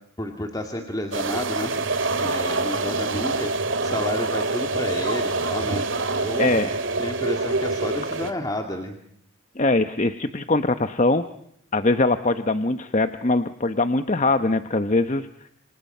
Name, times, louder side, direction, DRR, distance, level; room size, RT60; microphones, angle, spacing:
voice 1, 0.2-1.7 2.2-3.5 3.8-5.8 6.1-6.5 7.0-9.0, left 1 dB, 20° left, 3 dB, 2.3 m, -31 dB
sound 1, 1.1-8.3, right 3 dB, 65° right, 2.5 m, -25 dB
voice 2, 6.4-6.7 9.6-11.2 11.7-15.3, left 2 dB, 35° left, 9 dB, 1.0 m, -22 dB
28.5 x 27.0 x 5.6 m, 0.68 s
head